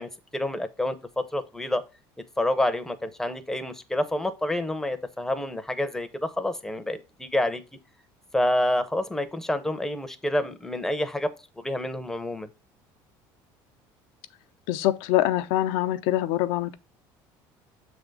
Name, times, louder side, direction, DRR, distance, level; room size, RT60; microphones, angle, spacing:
voice 1, 0.0-1.8 2.4-7.6 8.3-11.3 11.6-12.5, left 1 dB, 5° left, 0.6 m, -28 dB
voice 2, 14.7-16.8, left 14 dB, 80° left, 0.6 m, -24 dB
7.1 x 3.5 x 5.2 m
cardioid pair, 150°, 9 cm